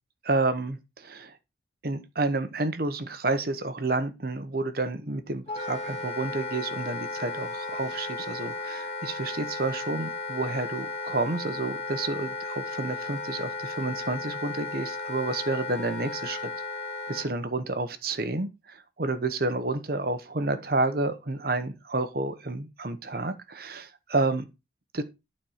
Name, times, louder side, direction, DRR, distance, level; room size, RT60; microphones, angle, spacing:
voice 1, 0.2-1.4 1.8-16.5 17.1-24.4 24.9-25.0, right 2 dB, 50° right, 0.9 m, -30 dB
Wind instrument woodwind instrument, 5.5-17.3, left 3 dB, 35° left, 1.7 m, -35 dB
12.0 x 4.4 x 4.9 m
head